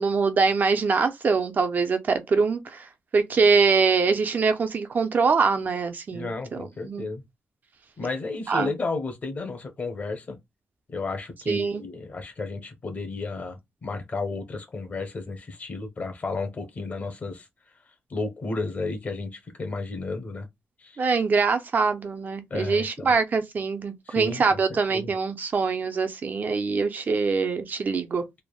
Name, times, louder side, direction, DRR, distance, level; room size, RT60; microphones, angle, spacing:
voice 1, 0.0-7.1 8.5-8.7 11.5-11.8 21.0-28.2, right 4 dB, 45° right, 0.5 m, -24 dB
voice 2, 6.1-7.2 8.0-10.4 10.9-17.5 18.1-20.5 20.8-21.0 22.5-23.1 24.1-25.1, left 3 dB, 40° left, 0.7 m, -33 dB
3.3 x 2.0 x 2.3 m
wide cardioid pair, 135°, 4 cm